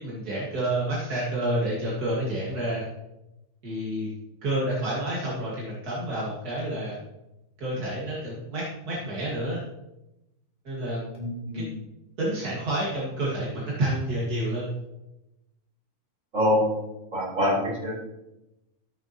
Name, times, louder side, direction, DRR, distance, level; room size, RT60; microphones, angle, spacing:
voice 1, 0.0-2.9 3.6-4.1 4.4-7.0 7.6-9.6 10.6-11.2 11.5-11.6 12.2-14.7, right 1 dB, 85° right, -6 dB, 2.6 m, -29 dB
voice 2, 11.2-11.7 16.3-16.7 17.1-18.1, left 1 dB, 60° right, -6 dB, 4.7 m, -25 dB
14.5 x 6.6 x 3.0 m, 0.92 s
omnidirectional pair, 1.6 m